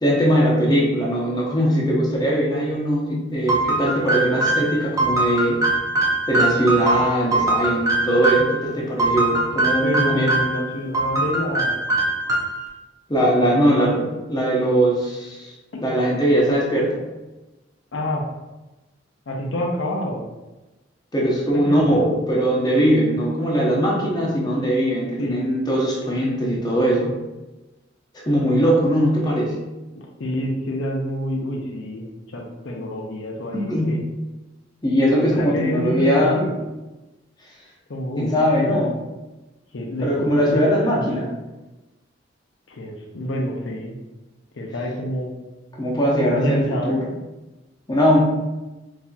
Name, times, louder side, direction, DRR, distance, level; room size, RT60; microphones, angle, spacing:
voice 1, 0.0-5.6 6.3-10.3 13.1-15.5 15.8-17.0 21.1-27.2 28.3-29.6 33.7-34.0 34.8-36.5 38.2-39.0 40.0-41.3 45.8-47.1 47.9-48.2, equal, 20° left, -4 dB, 0.7 m, -20 dB
sound 1, 3.5-8.6 9.0-10.6 10.9-12.7, right 2 dB, 20° right, 0.5 m, -22 dB
voice 2, 9.8-11.8 13.4-13.8 17.9-18.3 19.3-20.2 21.6-22.1 25.0-25.5 29.9-32.1 32.3-34.0 35.4-36.5 37.9-38.9 39.7-40.6 40.9-41.3 42.7-44.0 44.5-45.3 46.3-47.0, left 1 dB, 90° left, 0 dB, 0.6 m, -27 dB
4.0 x 2.7 x 2.3 m, 1.1 s
head